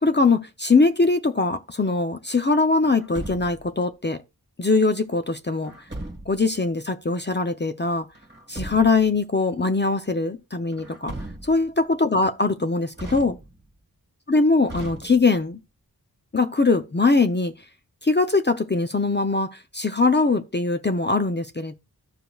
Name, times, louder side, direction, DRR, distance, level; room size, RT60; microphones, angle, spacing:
voice 1, 0.0-4.2 4.6-5.7 6.3-8.1 8.5-11.1 11.4-13.4 14.3-15.6 16.3-17.5 18.0-21.7, left 3 dB, 30° left, 0.5 m, -21 dB
Truck, 2.8-3.8 5.6-6.5 8.2-9.1 10.7-11.8 12.9-13.8 14.7-15.5, right 1 dB, 25° right, 1.5 m, -38 dB
14.0 x 5.0 x 2.3 m
wide cardioid pair, 60°, 39 cm